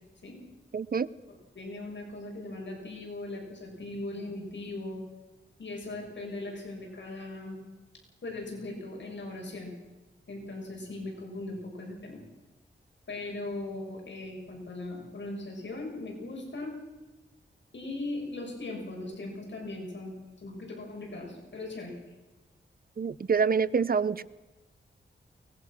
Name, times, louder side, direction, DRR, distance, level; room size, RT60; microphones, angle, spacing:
voice 1, 0.7-1.1 23.0-24.2, right 5 dB, 50° right, 17 dB, 0.8 m, -26 dB
voice 2, 1.5-5.0 5.6-7.6 8.2-9.7 10.3-12.2 13.1-16.7 17.7-20.2 20.4-22.0, left 2 dB, 70° left, 0 dB, 6.6 m, -39 dB
23.0 x 20.0 x 6.2 m, 1.2 s
wide cardioid pair, 80°, 20 cm